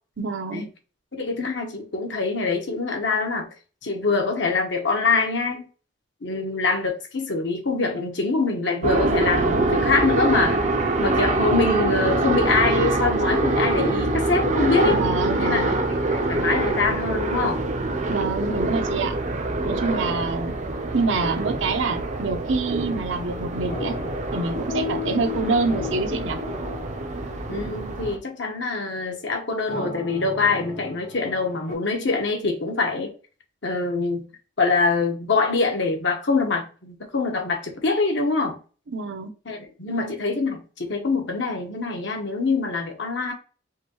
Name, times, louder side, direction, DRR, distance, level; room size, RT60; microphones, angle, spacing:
voice 1, 0.2-0.7 14.8-15.8 18.1-19.2 19.6-20.5 20.9-23.9 24.3-26.4 38.9-39.3, right 3 dB, 75° right, 0.7 m, -26 dB
voice 2, 1.1-3.5 3.8-5.7 6.2-10.7 11.0-15.0 15.4-15.8 16.1-17.6 27.5-33.1 33.6-34.2 34.6-38.6 39.5-43.3, left 3 dB, 70° left, 1.1 m, -24 dB
sound 1, 8.8-28.2, right 2 dB, 35° right, 0.5 m, -25 dB
sound 2, 23.1-28.2 29.3-31.7, left 5 dB, 85° left, 2.5 m, -36 dB
5.0 x 3.1 x 3.0 m
head